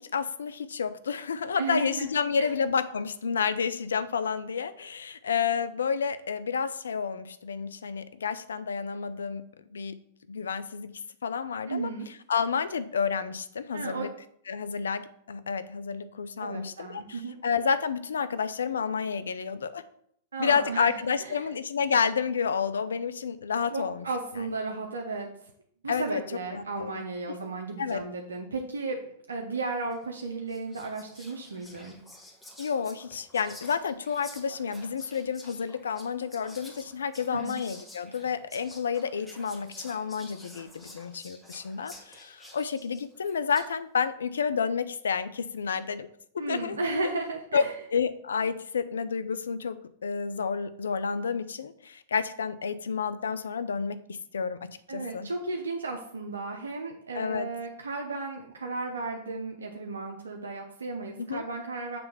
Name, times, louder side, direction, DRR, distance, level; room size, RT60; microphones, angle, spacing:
voice 1, 0.0-9.4 9.7-10.0 10.3-10.9 11.2-11.9 12.3-14.1 14.5-19.8 20.4-24.0 24.4-24.5 25.9-26.2 26.5-27.0 27.8-28.0 32.6-46.1 46.5-46.8 47.5-47.7 47.9-55.3 57.1-57.5 61.2-61.4, left 6 dB, 85° left, 13 dB, 0.5 m, -30 dB
voice 2, 1.6-2.5 11.7-12.1 13.7-14.1 16.4-17.4 20.3-21.5 23.7-25.3 25.8-29.0 29.3-32.0 37.3-37.6 46.4-47.7 54.9-62.0, right 3 dB, 90° right, 2 dB, 0.7 m, -34 dB
Whispering, 29.9-30.1 30.5-43.8, left 1 dB, 5° left, 1.5 m, -50 dB
6.7 x 3.3 x 5.4 m, 0.68 s
hypercardioid pair, 110°, 0 cm